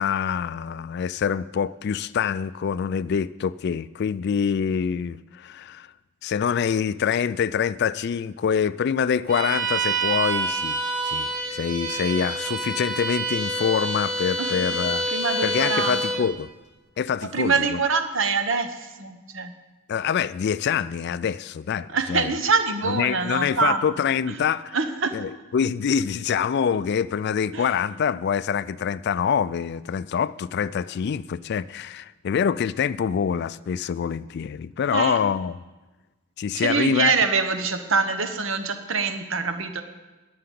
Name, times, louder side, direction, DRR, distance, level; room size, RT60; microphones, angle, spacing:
voice 1, 0.0-5.9 6.2-15.1 15.4-16.5 17.0-17.8 19.9-22.3 22.9-24.8 25.1-35.6 36.4-37.1, left 7 dB, 50° left, 0.3 m, -25 dB
Bowed string instrument, 9.3-16.3, right 2 dB, 40° right, 2.0 m, -27 dB
voice 2, 15.0-16.1 17.2-19.5 21.9-23.9 24.3-24.4 24.7-25.1 27.5-27.7 34.9-35.2 36.5-39.8, right 4 dB, 65° right, 1.1 m, -25 dB
11.5 x 6.9 x 9.3 m
head